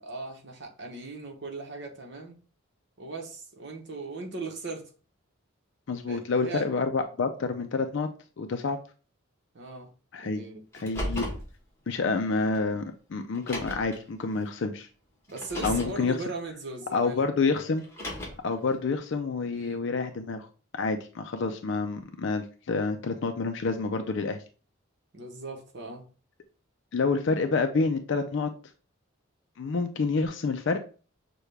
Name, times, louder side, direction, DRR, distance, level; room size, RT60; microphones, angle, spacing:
voice 1, 0.0-2.4 3.0-4.9 6.1-6.7 9.5-9.9 10.2-10.9 15.3-17.7 19.5-19.8 25.1-26.0, right 3 dB, 55° right, 1.0 m, -38 dB
voice 2, 5.9-8.1 8.4-8.8 10.1-10.4 10.8-11.3 11.9-14.9 15.6-16.2 16.9-17.8 18.4-20.5 20.7-24.4 26.9-28.5 29.6-30.8, left 4 dB, 55° left, 0.4 m, -28 dB
Car, 10.7-11.5 12.5-12.6 13.3-14.0 15.3-16.0 17.8-18.5, equal, 10° left, 1.0 m, -35 dB
6.4 x 2.3 x 3.3 m
head